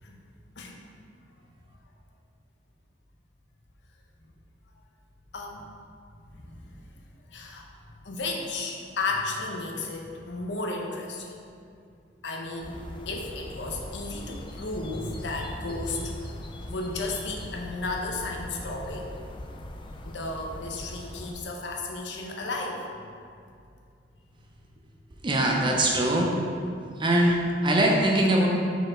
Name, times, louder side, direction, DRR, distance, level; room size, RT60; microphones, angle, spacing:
voice 1, 6.3-6.6 7.3-7.7 8.0-11.4 12.2-12.8 13.1-16.3 16.7-19.1 20.0-22.8, left 3 dB, 75° left, 0 dB, 0.7 m, -33 dB
sound 1, 12.6-21.3, left 1 dB, 30° left, 0.4 m, -41 dB
voice 2, 25.2-26.3 27.0-27.4 27.6-28.5, right 1 dB, 25° right, -1 dB, 0.6 m, -22 dB
5.1 x 4.3 x 4.4 m, 2.4 s
head